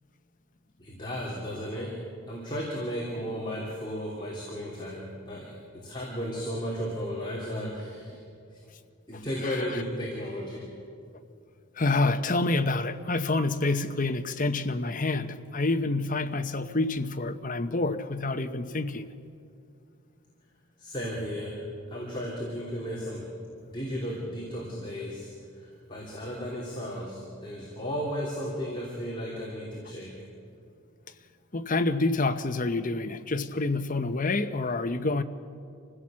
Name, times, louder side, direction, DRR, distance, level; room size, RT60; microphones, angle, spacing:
voice 1, 0.8-2.0 2.3-8.2 9.1-10.7 20.8-21.6 21.9-23.3 23.7-25.3 25.6-30.1, equal, 20° left, -5 dB, 3.2 m, -34 dB
voice 2, 9.1-9.8 11.8-19.1 31.5-35.2, left 2 dB, 40° left, 9 dB, 0.8 m, -28 dB
26.0 x 16.0 x 7.5 m, 2.4 s
head